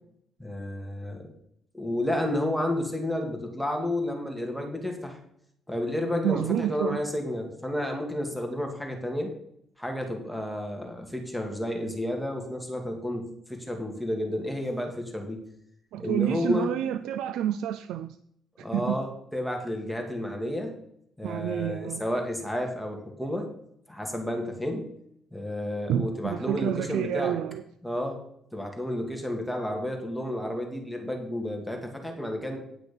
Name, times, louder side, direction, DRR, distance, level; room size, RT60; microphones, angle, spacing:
voice 1, 0.4-1.3 1.7-5.2 5.7-9.3 9.8-15.4 16.0-16.7 18.6-20.8 21.2-23.5 23.9-24.9 25.3-27.4 27.8-28.2 28.5-32.6, left 1 dB, ahead, 2 dB, 2.3 m, -31 dB
voice 2, 6.2-7.0 15.9-18.2 18.7-19.0 21.2-22.0 25.9-27.6, right 11 dB, 90° right, 12 dB, 0.4 m, -29 dB
10.5 x 6.0 x 5.3 m, 0.72 s
cardioid pair, 90°, 0 cm